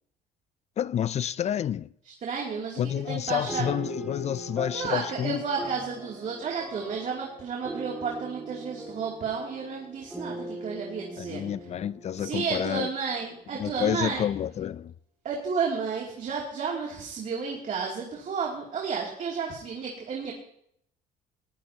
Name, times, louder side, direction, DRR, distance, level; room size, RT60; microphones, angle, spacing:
voice 1, 0.8-1.9 2.8-5.4 11.2-12.9 13.6-14.9, left 10 dB, 40° left, 0.4 m, -29 dB
voice 2, 2.2-3.7 4.7-11.5 12.2-14.3 15.2-20.3, right 5 dB, 50° right, 2.7 m, -32 dB
sound 1, 3.5-13.2, right 2 dB, 10° right, 2.2 m, -41 dB
19.0 x 14.5 x 2.9 m
cardioid pair, 110°, 17 cm